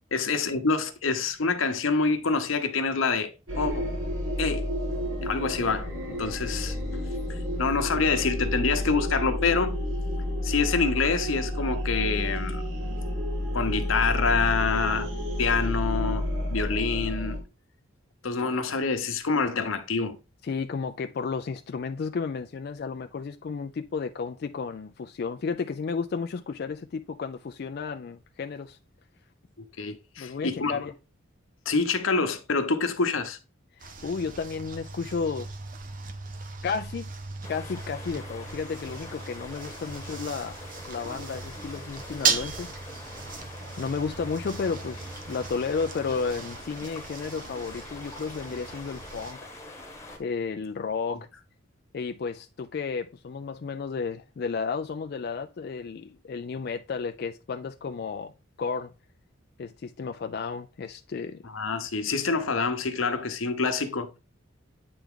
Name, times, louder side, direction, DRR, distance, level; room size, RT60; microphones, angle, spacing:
voice 1, 0.1-3.9 4.4-4.7 5.2-5.9 6.2-6.8 7.3-9.8 10.4-12.6 13.5-15.1 15.4-17.4 18.2-20.2 29.8-30.8 31.7-33.4 51.1-51.2 61.5-64.2, left 4 dB, 85° left, 0.9 m, -26 dB
sound 1, 3.5-17.4, left 1 dB, 80° right, 2.6 m, -30 dB
voice 2, 20.4-28.8 30.2-30.9 33.8-35.5 36.6-37.1 37.5-42.7 43.8-49.4 50.2-51.3 51.9-58.3 58.6-58.9 59.6-61.4, left 5 dB, 50° left, 0.3 m, -32 dB
sound 2, 33.8-49.3, right 5 dB, 40° right, 0.7 m, -37 dB
sound 3, 37.4-50.2, left 2 dB, 15° left, 1.4 m, -44 dB
8.6 x 3.5 x 3.6 m
head